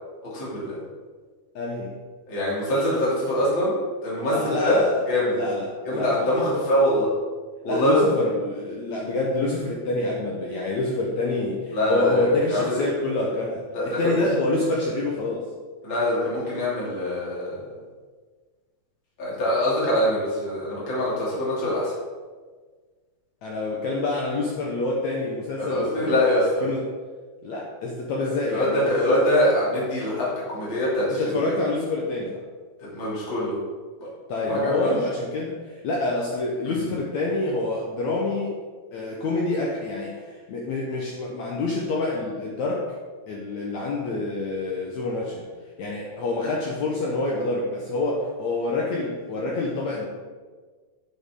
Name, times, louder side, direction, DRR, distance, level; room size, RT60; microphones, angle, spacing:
voice 1, 0.3-0.8 2.3-3.7 4.0-5.4 5.9-7.1 7.6-8.0 11.7-12.9 13.7-14.2 15.8-17.7 19.2-21.9 25.6-26.6 28.5-31.5 32.9-33.6 34.0-34.1 34.5-34.9, left 1 dB, 35° left, -7 dB, 3.2 m, -23 dB
voice 2, 1.5-1.9 4.3-5.0 5.3-6.3 7.6-15.5 23.4-26.2 26.6-26.9 27.4-29.2 31.1-32.4 34.3-38.5 38.9-42.9 43.3-45.5 45.8-50.1, left 2 dB, 75° left, -2 dB, 1.7 m, -27 dB
10.0 x 7.3 x 3.7 m, 1.5 s
omnidirectional pair, 4.5 m